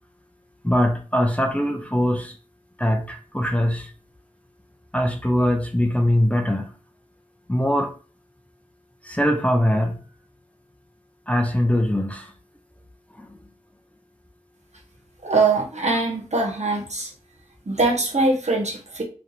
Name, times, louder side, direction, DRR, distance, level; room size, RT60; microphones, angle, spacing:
voice 1, 0.6-2.4 2.8-3.9 4.9-6.7 7.5-7.9 9.0-10.0 11.3-12.3 13.2-13.4, equal, 10° left, 0.6 m, -22 dB
voice 2, 15.2-17.1 17.6-19.0, right 3 dB, 60° right, 1.2 m, -22 dB
3.4 x 2.7 x 3.9 m
wide cardioid pair, 45°, 13 cm